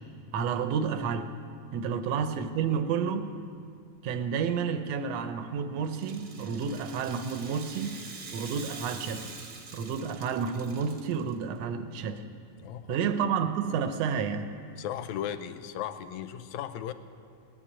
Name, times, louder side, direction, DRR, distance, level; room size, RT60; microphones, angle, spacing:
voice 1, 0.3-1.3 1.7-3.3 4.0-8.0 8.3-9.4 9.7-12.2 12.9-14.5, right 6 dB, 70° right, 9 dB, 1.8 m, -30 dB
Rattle (instrument), 5.8-11.3, right 4 dB, 50° right, 1.2 m, -45 dB
voice 2, 12.6-13.0 14.8-16.9, left 10 dB, 80° left, 11 dB, 2.0 m, -36 dB
18.5 x 9.9 x 7.3 m, 2.2 s
omnidirectional pair, 3.4 m